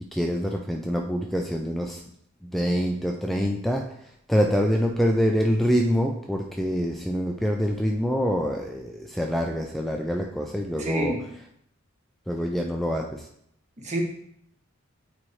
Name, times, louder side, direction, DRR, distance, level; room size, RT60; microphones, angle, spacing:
voice 1, 0.0-2.0 2.4-4.0 4.3-11.2 12.3-13.3, equal, ahead, 1 dB, 0.4 m, -25 dB
voice 2, 10.8-11.2 13.8-14.0, right 1 dB, 35° right, 2 dB, 1.1 m, -28 dB
8.7 x 4.3 x 3.1 m, 0.71 s
head